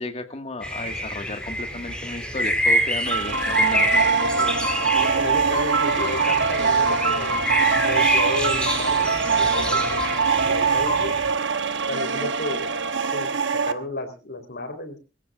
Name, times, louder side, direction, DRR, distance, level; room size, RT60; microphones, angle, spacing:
voice 1, 0.0-4.0, left 2 dB, 35° left, 7 dB, 1.9 m, -33 dB
sound 1, 0.6-11.3, equal, 5° left, 4.1 m, -27 dB
sound 2, 3.1-13.7, right 5 dB, 65° right, 1.2 m, -23 dB
voice 2, 4.9-7.4 7.8-10.0 10.5-11.2 11.9-12.7 13.1-15.0, left 2 dB, 55° left, 8 dB, 3.9 m, -33 dB
24.5 x 15.5 x 2.5 m, 0.33 s
head